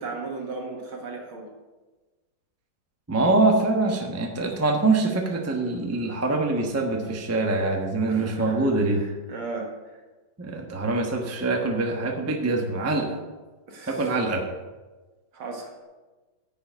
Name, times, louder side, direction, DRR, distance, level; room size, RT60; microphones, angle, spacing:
voice 1, 0.0-1.5 8.1-10.0 13.7-14.1 15.3-15.7, right 3 dB, 75° right, 0 dB, 2.5 m, -36 dB
voice 2, 3.1-9.0 10.4-13.2 13.9-14.5, right 2 dB, 15° right, 2 dB, 0.6 m, -24 dB
10.0 x 5.0 x 7.8 m, 1.2 s
omnidirectional pair, 2.3 m